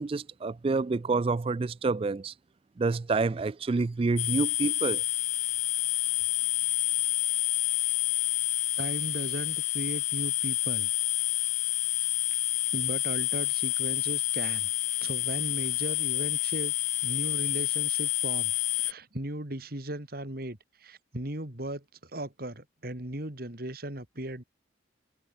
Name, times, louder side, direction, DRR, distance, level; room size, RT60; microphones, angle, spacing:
voice 1, 0.0-2.3 2.8-5.0, right 3 dB, 30° right, 0.3 m, -28 dB
sound 1, 4.2-18.9, left 15 dB, 40° left, 0.4 m, -28 dB
voice 2, 8.8-10.9 12.7-14.7 15.0-16.7 17.0-18.5 18.8-24.4, right 1 dB, 55° right, 3.0 m, -37 dB
head